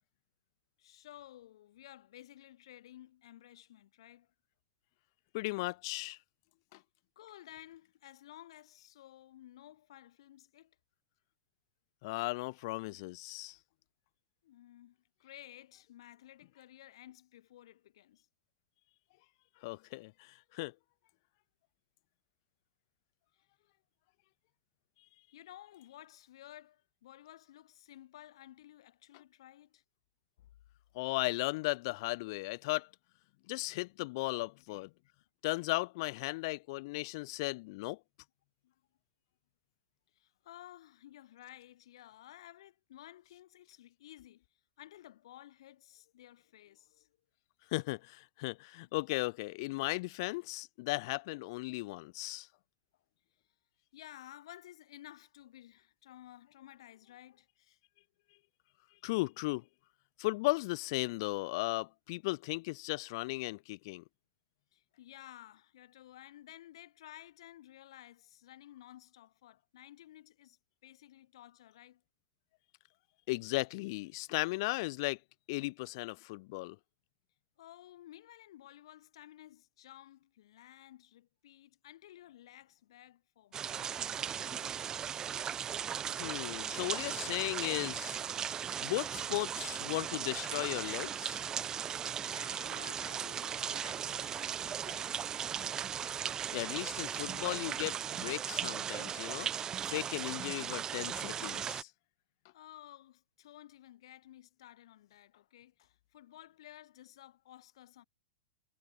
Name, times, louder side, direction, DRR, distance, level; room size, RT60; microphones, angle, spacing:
voice 1, 0.8-4.3 7.2-10.8 14.4-18.3 23.3-23.5 25.3-29.8 30.4-30.5 34.7-34.9 38.6-38.8 40.1-47.2 48.8-48.9 53.9-57.8 64.7-72.0 77.6-84.7 92.3-95.3 102.5-108.0, left 13 dB, 70° left, 5.9 m, -55 dB
voice 2, 5.3-6.2 6.7-6.8 12.0-13.6 19.6-20.7 30.9-32.9 33.5-34.9 35.4-38.0 47.7-52.5 59.0-59.6 60.2-64.0 73.3-75.2 75.5-76.8 86.1-88.2 88.8-91.4 96.5-99.5 99.9-101.9, left 23 dB, 55° left, 1.0 m, -36 dB
sound 1, 83.5-101.8, right 8 dB, 20° right, 1.4 m, -37 dB
hypercardioid pair, 135°, 3 cm